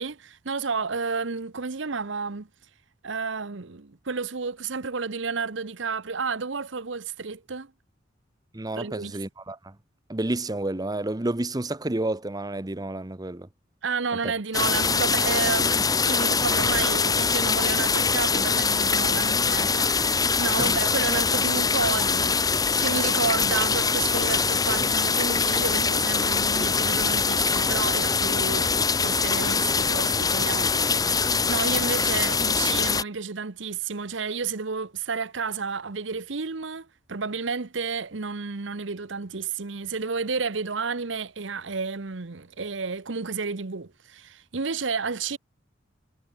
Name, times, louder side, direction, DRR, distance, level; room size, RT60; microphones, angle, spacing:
voice 1, 0.0-2.5 3.0-7.7 8.8-9.2 13.8-28.7 29.0-45.4, right 5 dB, 70° right, 1.0 m, -31 dB
voice 2, 8.5-9.7 10.1-13.5 14.2-14.3 19.2-19.3 20.6-20.8, right 2 dB, 20° right, 0.9 m, -30 dB
sound 1, 14.5-33.0, left 5 dB, 20° left, 1.0 m, -23 dB
head